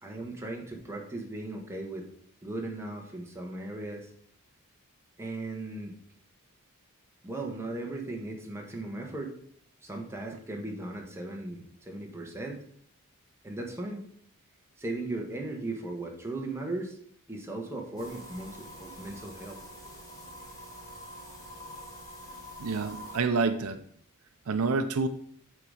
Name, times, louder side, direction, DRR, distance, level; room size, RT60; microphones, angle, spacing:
voice 1, 0.0-2.1 2.4-4.1 5.2-5.9 7.2-9.3 9.8-12.6 13.4-14.0 14.8-17.0 17.3-20.0, right 2 dB, 10° right, 0 dB, 1.2 m, -37 dB
sound 1, 18.0-23.2, equal, 15° left, 1.6 m, -46 dB
voice 2, 22.6-23.8 24.5-25.1, right 4 dB, 75° right, 9 dB, 0.5 m, -28 dB
8.5 x 4.0 x 4.9 m, 0.63 s
head